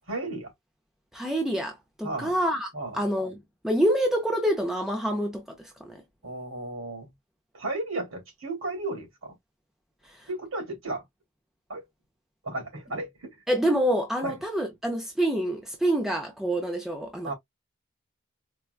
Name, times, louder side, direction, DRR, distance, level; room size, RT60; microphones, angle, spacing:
voice 1, 0.1-0.5 2.0-2.3 2.7-3.0 6.2-7.1 7.5-9.4 10.3-11.0 11.7-11.8 12.4-13.4 14.2-14.3 17.2-17.3, right 2 dB, 75° right, 2.5 m, -34 dB
voice 2, 1.1-6.0 10.0-10.3 13.5-17.3, right 1 dB, ahead, 0.5 m, -27 dB
4.5 x 2.2 x 2.4 m
head